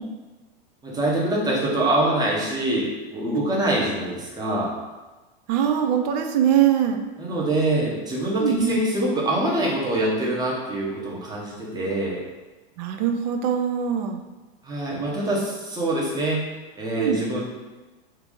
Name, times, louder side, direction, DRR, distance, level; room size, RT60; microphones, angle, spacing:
voice 1, 0.8-4.7 7.2-12.2 14.6-16.4 16.8-17.5, right 1 dB, 15° right, -4 dB, 0.9 m, -24 dB
voice 2, 5.5-7.0 8.4-8.8 12.8-14.2 17.0-17.2, right 9 dB, 45° right, 5 dB, 0.4 m, -22 dB
2.9 x 2.5 x 3.6 m, 1.2 s
hypercardioid pair, 110°, 30 cm